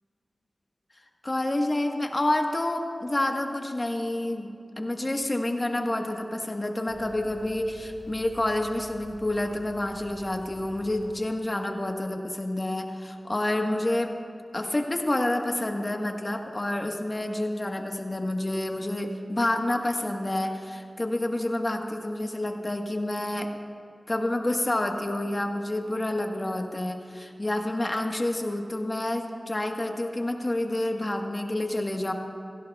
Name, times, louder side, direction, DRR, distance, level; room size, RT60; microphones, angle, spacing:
voice 1, 1.2-14.1 14.5-23.5 24.1-32.1, left 1 dB, 40° left, 3 dB, 1.3 m, -28 dB
sound 1, 6.9-11.1 12.1-12.2, right 1 dB, 5° left, 2.1 m, -49 dB
17.5 x 16.0 x 2.3 m, 2.4 s
wide cardioid pair, 50°, 0 cm